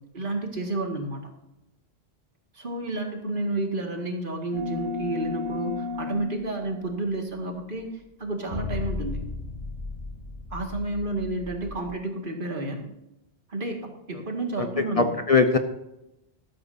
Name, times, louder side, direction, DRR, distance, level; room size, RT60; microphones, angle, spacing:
voice 1, 0.1-1.3 2.5-7.9 8.2-9.2 10.5-12.9 13.5-15.1, right 2 dB, 55° right, 2 dB, 2.1 m, -30 dB
sound 1, 4.5-7.1 8.5-11.9, left 4 dB, 70° left, 5.0 m, -35 dB
voice 2, 14.6-15.6, left 4 dB, 35° left, 6 dB, 0.9 m, -21 dB
13.5 x 13.0 x 2.7 m, 0.91 s
omnidirectional pair, 1.1 m